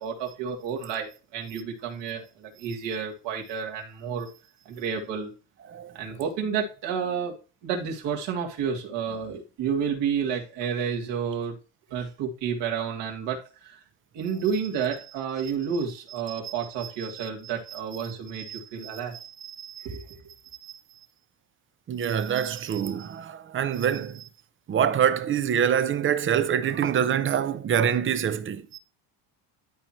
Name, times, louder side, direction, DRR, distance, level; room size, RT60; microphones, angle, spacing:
voice 1, 0.0-4.3 4.6-5.3 5.9-7.3 7.6-11.5 11.9-13.8 14.1-19.2 19.8-20.0, right 7 dB, 70° right, 3.0 m, -30 dB
voice 2, 18.5-19.0 19.4-20.0 20.6-20.7 21.9-24.3 24.7-28.8, right 8 dB, 30° right, 0.7 m, -26 dB
12.5 x 4.5 x 3.2 m
cardioid pair, 145°, 44 cm